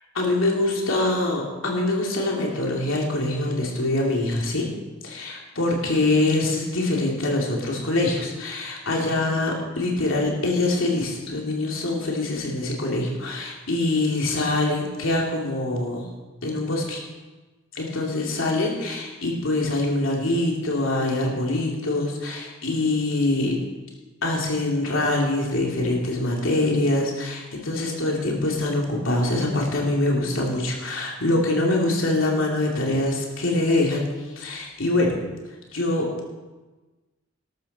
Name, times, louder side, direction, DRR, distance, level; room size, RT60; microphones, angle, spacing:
voice 1, 0.1-4.7 5.0-16.1 16.4-17.0 17.7-23.5 24.2-34.0 34.3-35.2 35.7-36.1, left 2 dB, 80° left, -1 dB, 2.8 m, -24 dB
13.0 x 13.0 x 4.3 m, 1.2 s
head